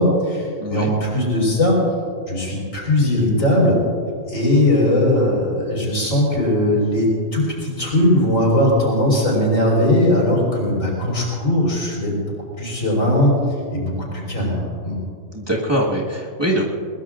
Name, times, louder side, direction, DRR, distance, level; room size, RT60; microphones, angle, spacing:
voice 1, 0.0-1.8 2.3-3.8 4.3-12.3 12.6-13.3 13.7-15.0, left 1 dB, 70° left, -3 dB, 5.5 m, -19 dB
voice 2, 15.3-16.7, right 1 dB, 20° right, -4 dB, 1.8 m, -22 dB
22.0 x 21.0 x 2.5 m, 2.2 s
omnidirectional pair, 1.4 m